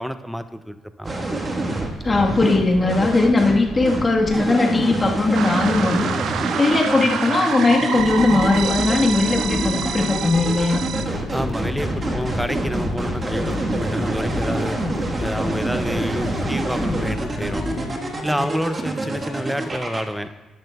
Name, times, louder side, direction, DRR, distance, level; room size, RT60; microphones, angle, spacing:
voice 1, 0.0-1.4 11.3-14.8 15.2-17.7 18.2-20.5, equal, ahead, 11 dB, 0.5 m, -28 dB
sound 1, 1.0-20.0, right 2 dB, 35° right, 1.3 m, -26 dB
voice 2, 2.0-10.9, left 3 dB, 30° left, 1 dB, 1.3 m, -19 dB
sound 2, 5.3-11.0, right 8 dB, 80° right, 0.4 m, -28 dB
sound 3, 8.0-18.0, left 4 dB, 45° left, 0.8 m, -31 dB
13.0 x 10.5 x 2.3 m, 1.2 s
cardioid pair, 90°, 0 cm